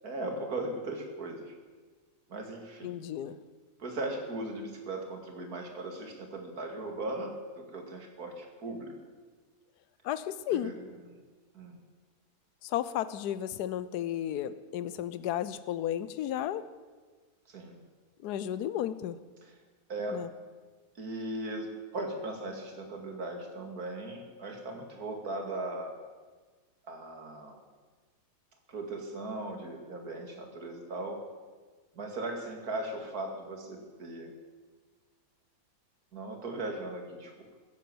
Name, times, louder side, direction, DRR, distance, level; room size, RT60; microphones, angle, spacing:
voice 1, 0.0-1.5 2.3-2.9 3.8-8.9 10.5-10.7 11.5-11.8 17.5-17.8 19.9-20.2 21.0-21.7 21.9-25.9 26.9-27.6 28.7-31.2 32.0-34.3 36.1-37.3, right 2 dB, 65° right, 4 dB, 2.6 m, -38 dB
voice 2, 2.8-3.4 10.0-10.8 12.6-16.7 18.2-19.2 20.1-20.3, left 11 dB, 80° left, 14 dB, 1.2 m, -33 dB
15.5 x 10.5 x 7.7 m, 1.4 s
omnidirectional pair, 1.7 m